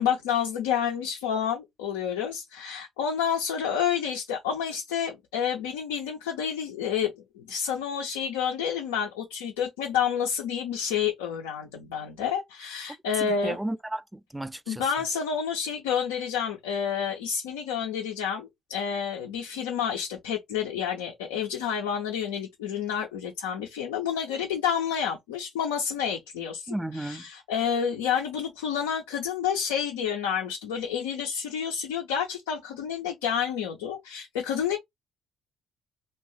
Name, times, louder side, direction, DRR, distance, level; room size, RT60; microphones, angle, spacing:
voice 1, 0.0-13.6 14.7-34.8, left 8 dB, 90° left, 0.5 m, -29 dB
voice 2, 13.2-14.9 26.7-27.2, right 1 dB, 10° right, 0.4 m, -33 dB
2.7 x 2.2 x 3.0 m
hypercardioid pair, 55°, 0 cm